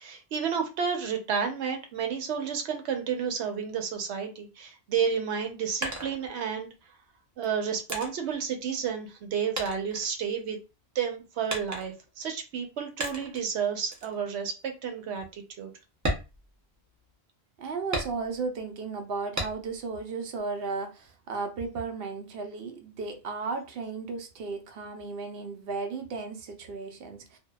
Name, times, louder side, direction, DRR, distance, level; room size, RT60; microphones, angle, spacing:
voice 1, 0.0-6.7 7.4-10.6 10.9-15.7, right 7 dB, 90° right, 0.9 m, -31 dB
sound 1, 5.3-6.8 7.4-9.3 9.6-10.7 11.5-12.1 13.0-13.5 13.9-14.2 14.6-14.7 15.1-15.3 15.9-17.1 17.9-18.6 19.4-19.9 20.3-21.1, right 1 dB, 20° right, 0.5 m, -36 dB
voice 2, 17.6-27.4, right 4 dB, 70° right, 0.8 m, -35 dB
2.6 x 2.1 x 2.2 m
omnidirectional pair, 1.1 m